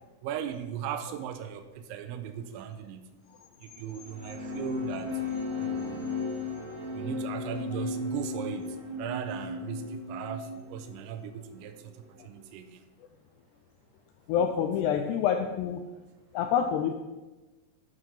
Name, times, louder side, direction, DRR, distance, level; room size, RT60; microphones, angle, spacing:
voice 1, 0.2-3.2 3.6-5.2 5.6-6.2 6.9-11.9 12.2-12.9, right 9 dB, 85° right, 9 dB, 3.0 m, -38 dB
sound 1, 3.8-12.4, left 3 dB, 50° right, 4.4 m, -40 dB
Wind instrument woodwind instrument, 5.0-10.7, left 3 dB, 35° right, 2.9 m, -37 dB
voice 2, 14.3-15.8 16.3-17.0, left 8 dB, 85° left, 5 dB, 2.4 m, -27 dB
11.5 x 4.7 x 5.5 m, 1.1 s
omnidirectional pair, 5.3 m